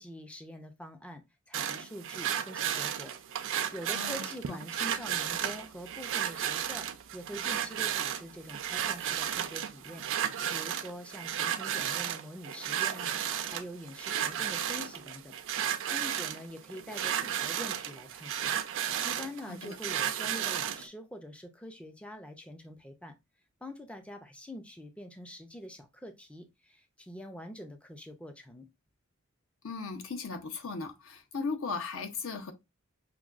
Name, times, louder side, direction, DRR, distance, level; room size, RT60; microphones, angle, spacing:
voice 1, 0.0-6.9 7.1-13.2 13.5-15.4 15.8-18.6 19.0-23.1 23.6-28.7, equal, 5° left, 0.4 m, -45 dB
sound 1, 1.5-20.9, right 10 dB, 65° right, 0.4 m, -33 dB
voice 2, 3.9-4.6 19.5-19.8 29.6-32.5, left 4 dB, 70° left, 0.7 m, -37 dB
5.9 x 2.2 x 2.4 m
head